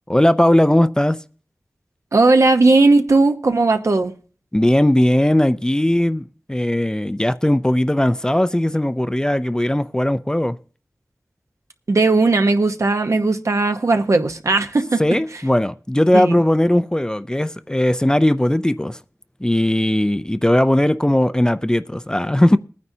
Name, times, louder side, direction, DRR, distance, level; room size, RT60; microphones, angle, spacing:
voice 1, 0.1-1.2 4.5-10.6 15.0-19.0 19.4-22.6, left 1 dB, 15° left, 0.4 m, -18 dB
voice 2, 2.1-4.1 11.9-15.0 16.1-16.4, right 3 dB, 65° right, 1.0 m, -16 dB
20.5 x 9.5 x 2.7 m
wide cardioid pair, 60°, 5 cm